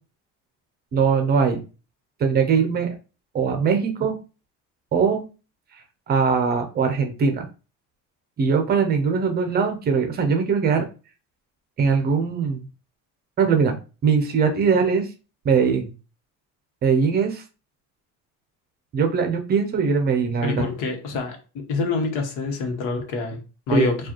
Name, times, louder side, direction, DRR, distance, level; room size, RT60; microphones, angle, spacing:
voice 1, 0.9-1.6 2.2-2.9 3.3-4.2 4.9-5.2 6.1-7.4 8.4-10.8 11.8-12.7 13.4-13.7 14.0-15.1 15.4-15.9 16.8-17.4 18.9-20.7 23.7-23.9, right 5 dB, 30° right, 5 dB, 0.6 m, -21 dB
voice 2, 20.4-24.0, left 4 dB, 75° left, 4 dB, 1.1 m, -26 dB
4.8 x 2.4 x 2.9 m, 0.33 s
cardioid pair, 175°, 31 cm